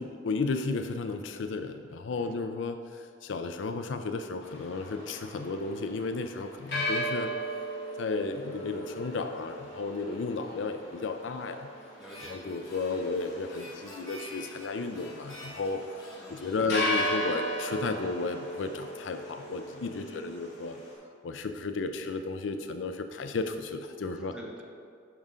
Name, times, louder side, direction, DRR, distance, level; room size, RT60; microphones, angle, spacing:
voice 1, 0.0-7.3 8.0-11.7 12.3-15.8 16.3-20.8 21.2-24.3, left 3 dB, 85° left, 8 dB, 0.4 m, -33 dB
voice 2, 2.1-2.5 12.0-12.6 16.1-16.5 20.0-20.2 24.3-24.6, equal, 5° right, -2 dB, 1.1 m, -48 dB
sound 1, 4.4-20.9, equal, 65° left, 2.1 m, -37 dB
Harmonica, 12.0-18.5, left 1 dB, 20° left, 2.1 m, -49 dB
10.5 x 3.7 x 5.5 m, 2.3 s
head